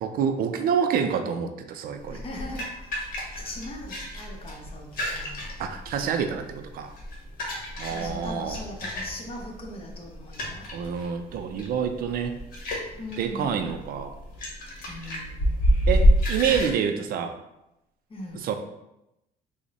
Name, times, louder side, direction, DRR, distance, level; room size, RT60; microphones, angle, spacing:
voice 1, 0.0-2.2 5.6-6.9 7.8-8.6 10.7-12.4 13.2-14.1 15.9-17.3 18.3-18.5, right 7 dB, 60° right, 7 dB, 0.4 m, -27 dB
sound 1, 2.0-16.7, equal, 55° left, 1.1 m, -28 dB
voice 2, 2.0-2.7 3.0-5.5 7.8-10.6 12.9-13.7 14.9-15.6 18.1-18.5, left 1 dB, 35° left, 0 dB, 0.8 m, -39 dB
3.4 x 2.1 x 4.0 m, 0.89 s
cardioid pair, 110°, 17 cm